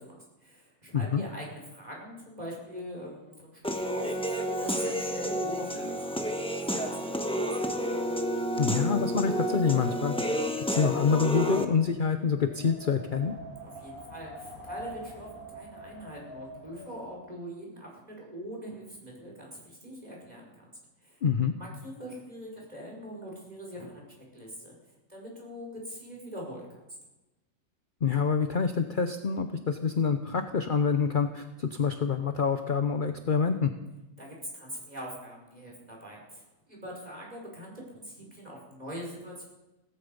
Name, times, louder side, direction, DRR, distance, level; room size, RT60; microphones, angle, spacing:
voice 1, 0.0-6.1 6.5-7.9 13.6-21.2 21.5-24.8 25.1-26.8 34.2-39.4, equal, 30° right, -2 dB, 5.3 m, -43 dB
Human voice / Piano, 3.6-11.7, equal, 5° left, 1.0 m, -30 dB
Wind, 8.1-17.2, equal, 85° left, 3.1 m, -46 dB
voice 2, 8.6-10.1 10.7-13.3 21.2-21.6 28.0-33.7, left 6 dB, 45° left, 8 dB, 0.8 m, -26 dB
17.0 x 15.0 x 5.4 m, 1.0 s
omnidirectional pair, 1.5 m